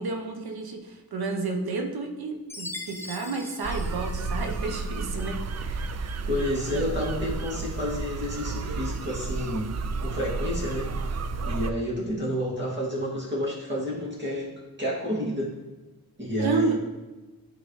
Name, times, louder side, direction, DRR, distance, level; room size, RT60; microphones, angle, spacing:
voice 1, 0.0-5.9 16.4-16.7, right 3 dB, 90° right, 3 dB, 1.0 m, -31 dB
Chime, 2.5-4.8, left 2 dB, 5° left, 0.6 m, -41 dB
sound 1, 3.6-11.7, right 3 dB, 45° right, 0.4 m, -32 dB
voice 2, 6.3-9.7 10.0-14.5 14.8-15.5 16.2-16.7, left 1 dB, 30° right, -6 dB, 2.4 m, -30 dB
11.5 x 3.9 x 3.2 m, 1.2 s
wide cardioid pair, 105°, 36 cm